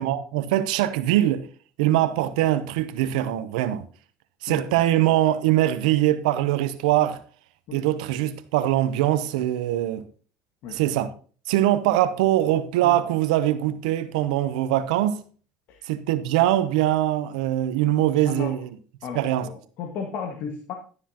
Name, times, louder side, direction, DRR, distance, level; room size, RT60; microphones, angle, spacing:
voice 1, 0.0-1.4 1.8-3.8 4.4-7.2 7.7-10.0 10.7-11.1 11.5-15.2 15.9-18.7 19.1-19.5, right 13 dB, 90° right, 0.8 m, -22 dB
voice 2, 19.0-20.7, left 6 dB, 65° left, 1.7 m, -34 dB
12.0 x 9.8 x 2.9 m
supercardioid pair, 95°, 4 cm